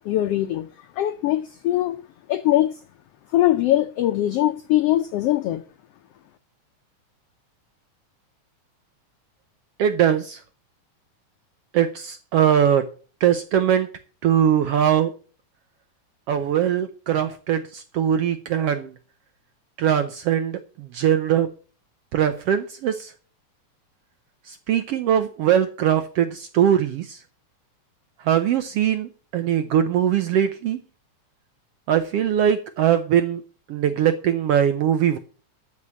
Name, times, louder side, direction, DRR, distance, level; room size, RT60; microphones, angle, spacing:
voice 1, 0.0-2.0 2.3-2.8 3.3-5.6, left 14 dB, 85° left, 1.3 m, -22 dB
voice 2, 9.8-10.4 11.7-12.9 13.2-13.9 14.2-15.1 16.3-18.9 19.8-21.5 22.1-23.1 24.5-27.2 28.2-30.8 31.9-33.4 33.7-35.2, right 9 dB, 75° right, 1.4 m, -21 dB
13.0 x 5.0 x 8.4 m
omnidirectional pair, 3.5 m